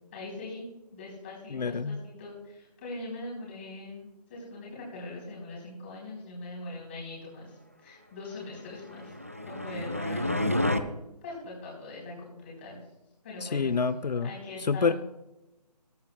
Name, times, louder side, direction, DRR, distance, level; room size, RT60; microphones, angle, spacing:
voice 1, 0.1-0.6 0.9-9.1 9.4-10.4 11.2-12.8 13.2-13.7 14.2-15.0, left 2 dB, 15° left, -4 dB, 3.9 m, -41 dB
voice 2, 1.5-2.0 13.4-14.3 14.7-15.0, left 5 dB, 80° left, 13 dB, 0.6 m, -27 dB
sound 1, 8.9-10.8, left 1 dB, 20° right, 0.4 m, -29 dB
18.5 x 12.0 x 2.3 m, 0.97 s
hypercardioid pair, 175°, 21 cm